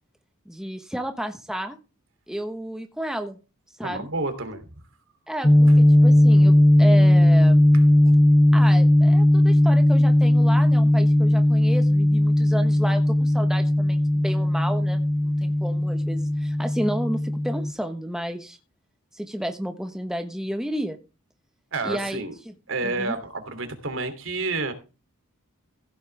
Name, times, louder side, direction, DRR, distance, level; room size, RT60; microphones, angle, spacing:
voice 1, 0.5-1.8 2.3-3.4 3.8-4.1 5.3-7.7 8.5-18.6 19.1-21.0 21.8-22.5 22.8-23.1, equal, 5° right, 5 dB, 1.2 m, -32 dB
voice 2, 3.8-4.7 5.7-5.8 8.0-8.1 21.7-22.3 22.7-24.7, right 3 dB, 60° right, 8 dB, 3.0 m, -30 dB
sound 1, 5.4-17.7, left 1 dB, 15° left, 0.7 m, -17 dB
16.0 x 9.0 x 3.4 m, 0.31 s
head